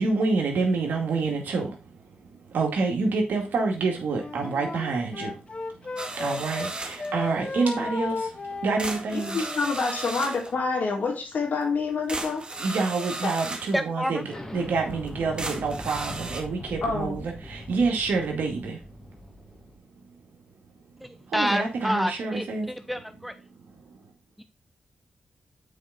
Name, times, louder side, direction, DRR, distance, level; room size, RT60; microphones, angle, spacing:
voice 1, 0.0-1.7 2.5-5.3 6.2-8.2 8.6-9.5 12.6-18.8 21.3-22.7, right 4 dB, 80° right, 2.2 m, -27 dB
Wind instrument woodwind instrument, 4.1-6.7 7.0-9.7, left 3 dB, 40° left, 1.0 m, -35 dB
sound 1, 6.0-7.1 8.2-8.3 8.8-10.5 11.6-11.7 12.1-13.8 14.4-14.5 15.1-15.2 15.4-16.4, right 2 dB, 35° right, 1.8 m, -35 dB
voice 2, 9.1-12.4 13.2-13.3 16.8-17.1, left 4 dB, 65° left, 3.1 m, -27 dB
voice 3, 13.7-14.2 21.0-23.3 24.4-24.5, equal, ahead, 0.6 m, -29 dB
Explosion, 14.2-19.8, equal, 20° left, 2.1 m, -41 dB
8.3 x 4.8 x 4.1 m
cardioid pair, 55°, 3 cm